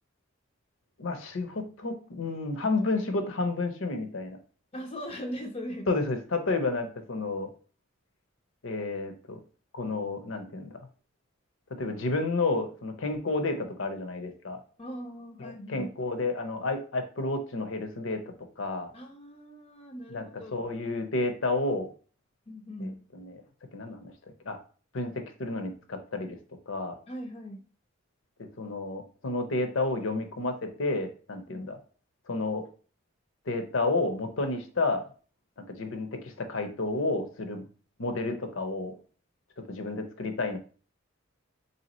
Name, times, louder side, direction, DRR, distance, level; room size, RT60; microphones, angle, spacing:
voice 1, 1.0-4.4 5.9-7.5 8.6-9.4 9.7-10.8 11.7-14.6 15.4-18.2 18.6-18.9 20.1-21.9 22.8-23.4 23.7-24.1 24.5-24.6 24.9-26.4 26.7-27.0 28.4-31.8 32.3-32.6 33.5-35.1 35.6-37.6 38.0-39.0 39.6-40.6, left 3 dB, 70° left, 7 dB, 0.7 m, -31 dB
voice 2, 4.7-5.9 14.8-15.9 18.9-20.5 22.5-23.0 27.1-27.6 31.5-31.7, equal, 30° left, 2 dB, 0.5 m, -39 dB
3.3 x 2.8 x 4.1 m, 0.39 s
head